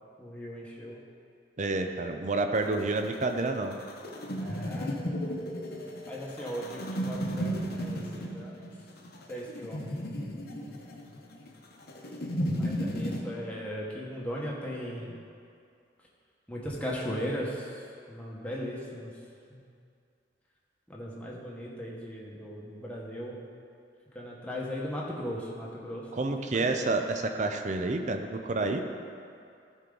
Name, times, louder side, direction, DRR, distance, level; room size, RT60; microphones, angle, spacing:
voice 1, 0.2-1.0 4.4-4.9 6.0-8.7 9.3-9.9 12.6-15.1 16.5-19.1 19.5-19.6 20.9-23.4 24.1-27.0, equal, 5° left, -4 dB, 1.2 m, -38 dB
voice 2, 1.6-3.8 26.1-28.8, right 3 dB, 40° right, 5 dB, 0.6 m, -29 dB
sound 1, 2.5-13.2, equal, 55° left, 0.9 m, -34 dB
14.0 x 4.7 x 3.9 m, 2.4 s
head